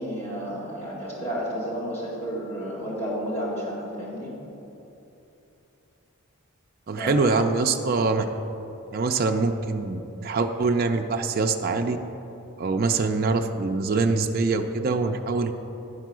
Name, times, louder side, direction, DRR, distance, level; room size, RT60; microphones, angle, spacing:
voice 1, 0.0-4.3 7.0-7.4, equal, 30° left, -8 dB, 2.1 m, -31 dB
voice 2, 6.9-8.3 8.9-12.0 12.6-15.5, right 3 dB, 40° right, 4 dB, 0.4 m, -24 dB
9.8 x 4.5 x 6.1 m, 2.9 s
head